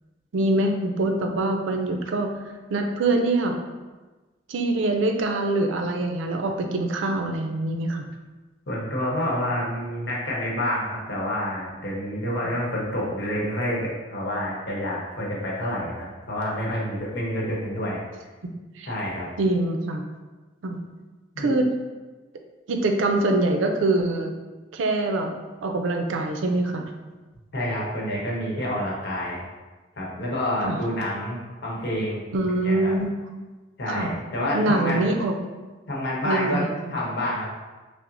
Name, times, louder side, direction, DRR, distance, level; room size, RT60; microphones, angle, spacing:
voice 1, 0.3-2.3 2.7-3.6 4.5-8.0 18.8-18.9 19.4-20.0 20.6-20.8 21.4-21.7 22.7-24.3 24.7-25.3 25.6-26.8 30.6-30.8 32.3-33.1 33.9-34.1 34.5-35.3 36.2-37.0, right 2 dB, 75° right, 4 dB, 0.4 m, -24 dB
voice 2, 8.7-18.0 18.9-19.3 21.3-21.5 27.5-29.5 30.0-32.3 32.6-32.9 33.8-35.1 35.9-36.6 36.9-37.5, equal, 60° left, -4 dB, 0.9 m, -28 dB
5.7 x 2.0 x 2.5 m, 1.2 s
head